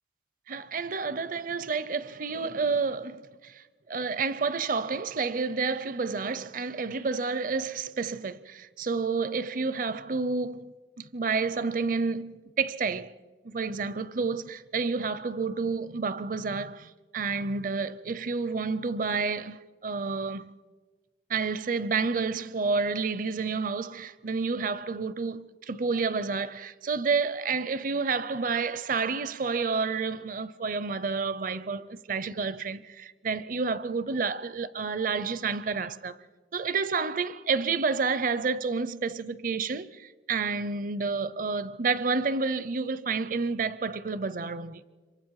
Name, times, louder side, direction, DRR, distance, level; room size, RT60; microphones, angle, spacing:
voice 1, 0.5-13.1 13.4-20.5 21.3-36.2 36.5-44.8, right 4 dB, 45° right, 0.6 m, -30 dB
26.5 x 23.5 x 4.8 m
head